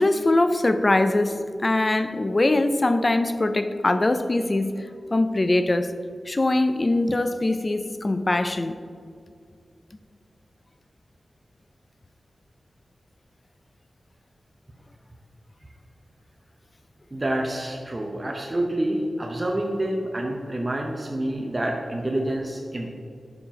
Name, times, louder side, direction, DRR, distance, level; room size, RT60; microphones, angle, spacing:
voice 1, 0.0-5.9 6.3-8.8, left 2 dB, 35° left, 0.3 m, -22 dB
voice 2, 17.1-22.9, right 1 dB, 30° right, 0.6 m, -27 dB
5.7 x 4.8 x 4.9 m
wide cardioid pair, 70°, 0 cm